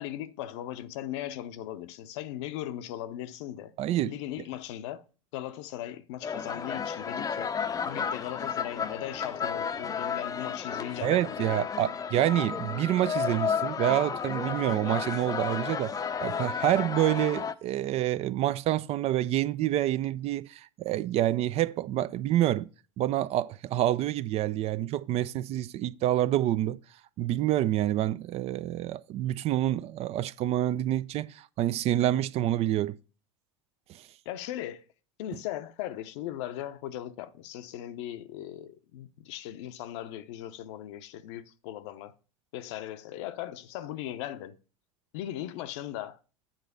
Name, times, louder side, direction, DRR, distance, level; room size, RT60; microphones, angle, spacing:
voice 1, 0.0-3.7 4.0-5.0 5.3-7.5 7.8-11.7 34.2-34.8 35.2-42.1 42.5-44.6 45.1-46.2, left 12 dB, 60° left, 0.7 m, -38 dB
voice 2, 3.8-4.1 11.0-15.9 16.2-22.7 23.0-26.8 27.2-32.9 33.9-34.0, right 13 dB, 40° right, 0.4 m, -27 dB
sound 1, 6.2-17.5, left 6 dB, 20° left, 0.6 m, -32 dB
9.0 x 4.0 x 6.6 m
hypercardioid pair, 80°, 17 cm